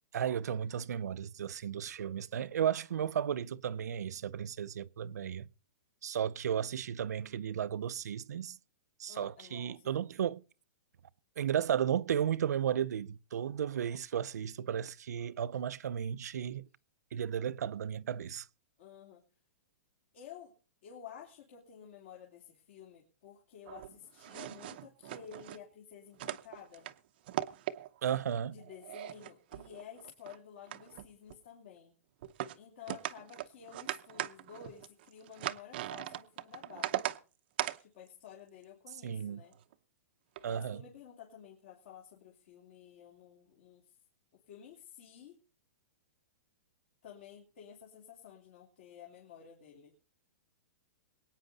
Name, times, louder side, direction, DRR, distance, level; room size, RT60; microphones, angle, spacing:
voice 1, 0.1-5.5 6.0-8.6 9.0-10.4 11.4-16.7 17.1-18.5 28.0-28.6 39.0-39.4 40.4-40.8, right 9 dB, 90° right, 0.6 m, -34 dB
voice 2, 9.1-10.1 18.8-19.2 20.1-20.5 20.8-26.9 28.5-32.0 32.5-37.2 37.8-39.5 40.4-43.8 44.5-45.4 47.0-49.9, left 8 dB, 50° left, 2.9 m, -52 dB
sound 1, 23.6-25.6 26.1-26.9 27.3-28.1 28.6-30.4 30.7-31.3 32.2-32.6 32.9-37.2 37.6-37.8 39.5-39.7 40.4-40.6, right 14 dB, 35° right, 0.7 m, -39 dB
22.5 x 9.2 x 4.0 m
hypercardioid pair, 175°, 9 cm